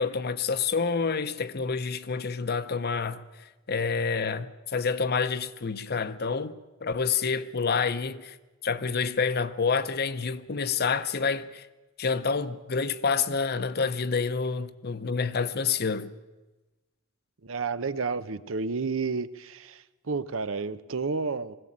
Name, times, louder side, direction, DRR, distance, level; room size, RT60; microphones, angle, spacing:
voice 1, 0.0-8.4 8.6-11.7 12.0-16.1, left 5 dB, 50° left, 0.7 m, -28 dB
voice 2, 17.4-21.6, right 4 dB, 75° right, 0.8 m, -31 dB
20.0 x 16.0 x 8.7 m
head